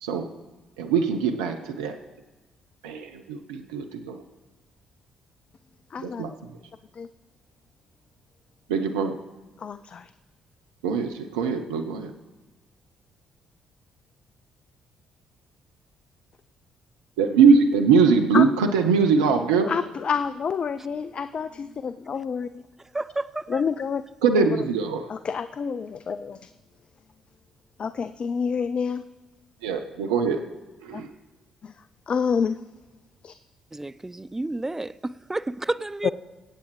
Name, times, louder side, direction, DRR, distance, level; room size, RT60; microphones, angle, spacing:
voice 1, 0.8-2.0 2.8-4.2 6.0-6.6 8.7-9.2 10.8-12.1 17.2-19.7 24.2-25.1 29.6-30.5 30.8-31.1, right 5 dB, 80° right, 0.6 m, -22 dB
voice 2, 5.9-6.2 7.0-7.1 9.6-10.1 18.3-18.4 19.7-22.5 23.5-24.0 24.4-24.5 25.1-26.5 27.8-29.0 30.9-31.0 31.6-31.7 32.1-32.6 33.2-33.3, left 6 dB, 45° left, 0.4 m, -28 dB
voice 3, 22.9-23.6 33.7-36.1, right 2 dB, 15° right, 0.4 m, -31 dB
24.0 x 8.5 x 3.2 m
hypercardioid pair, 45°, 2 cm